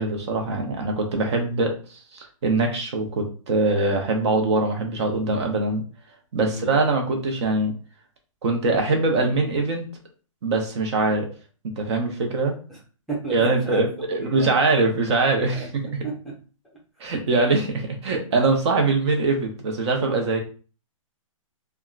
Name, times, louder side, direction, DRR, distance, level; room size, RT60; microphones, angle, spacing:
voice 1, 0.0-5.8 6.3-7.7 8.4-9.9 10.4-11.3 11.8-12.6 13.3-15.7 15.9-16.0 17.0-20.4, right 3 dB, 50° right, 3 dB, 0.8 m, -23 dB
voice 2, 13.1-14.5 15.5-15.7 16.0-16.4, right 2 dB, ahead, -6 dB, 0.6 m, -33 dB
3.5 x 2.2 x 2.4 m, 0.38 s
hypercardioid pair, 155°, 18 cm